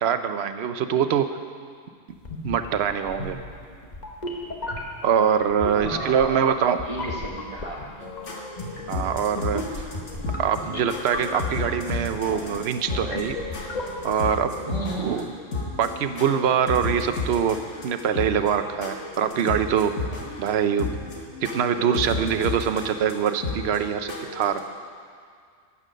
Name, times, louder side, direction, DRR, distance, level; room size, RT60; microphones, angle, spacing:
voice 1, 0.0-1.4 2.4-3.4 5.0-6.8 8.9-9.9 10.4-13.4 14.0-14.6 15.0-15.3 15.8-20.0 20.4-20.9 21.4-24.6, right 8 dB, 65° right, 9 dB, 0.9 m, -24 dB
sound 1, 2.2-14.3, left 2 dB, 40° left, 1.2 m, -36 dB
voice 2, 5.7-8.1 14.7-15.1, right 1 dB, 30° right, -3 dB, 1.1 m, -34 dB
sound 2, 8.0-24.6, left 3 dB, 80° left, 1.7 m, -33 dB
12.0 x 8.4 x 6.3 m, 2.1 s
omnidirectional pair, 1.2 m